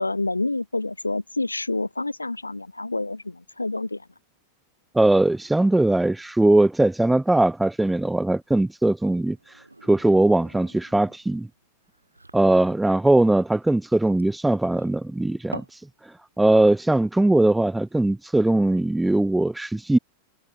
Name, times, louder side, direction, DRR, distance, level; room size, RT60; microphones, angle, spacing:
voice 1, 0.0-4.1, left 2 dB, 85° left, 0.7 m, -28 dB
voice 2, 4.9-9.4 9.8-11.5 12.3-15.6 16.4-20.0, right 2 dB, 5° right, 0.4 m, -20 dB
sound 1, 9.3-15.8, right 2 dB, 85° right, 1.5 m, -45 dB
figure-of-eight pair, 90°, 0 cm